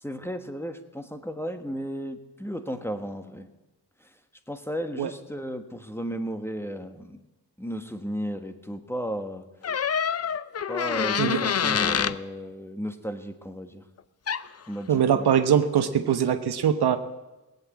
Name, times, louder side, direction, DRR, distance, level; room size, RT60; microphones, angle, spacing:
voice 1, 0.0-3.5 4.0-4.2 4.5-7.2 7.6-9.5 10.7-13.8 14.7-15.3, equal, 5° left, 7 dB, 1.3 m, -34 dB
sound 1, 9.6-12.2 14.3-14.5, left 7 dB, 40° left, 0.5 m, -26 dB
voice 2, 14.9-17.0, right 8 dB, 85° right, 9 dB, 1.0 m, -22 dB
17.0 x 7.9 x 8.4 m, 1.1 s
cardioid pair, 65°, 38 cm